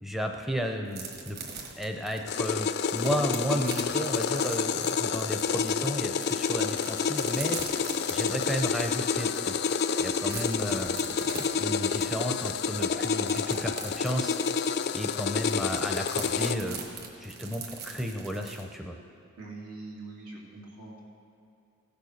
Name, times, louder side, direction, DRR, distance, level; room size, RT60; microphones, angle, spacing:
voice 1, 0.0-1.4 1.8-7.8 8.1-9.5 10.0-11.0 11.6-14.4 14.9-16.8 17.2-19.0, equal, ahead, 3 dB, 0.5 m, -33 dB
sound 1, 0.9-5.7 6.1-8.9 9.3-9.4 9.7-18.6, right 5 dB, 45° right, 1.5 m, -42 dB
sound 2, 2.3-16.5, left 6 dB, 50° left, 0.4 m, -29 dB
voice 2, 19.4-21.0, right 3 dB, 85° right, -3 dB, 2.7 m, -43 dB
16.0 x 6.9 x 6.4 m, 2.7 s
head